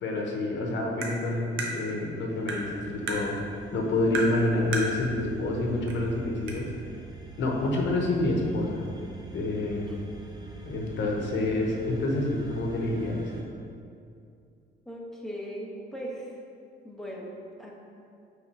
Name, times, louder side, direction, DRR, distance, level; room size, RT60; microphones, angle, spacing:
voice 1, 0.0-3.4 3.7-6.7 7.4-8.9 9.3-9.9 10.6-13.3, left 2 dB, 70° left, 0 dB, 1.1 m, -28 dB
Tap, 1.0-1.1 1.6-1.7 2.5-2.6 3.1-3.2 4.1-4.3 4.7-4.9 5.9-6.0 6.5-6.6, right 3 dB, 85° right, 1.0 m, -31 dB
sound 1, 2.3-13.4, right 5 dB, 20° right, 0.9 m, -45 dB
voice 2, 14.8-16.3 16.8-17.7, equal, ahead, -3 dB, 1.2 m, -38 dB
6.0 x 3.7 x 4.9 m, 2.4 s
cardioid pair, 90°, 20 cm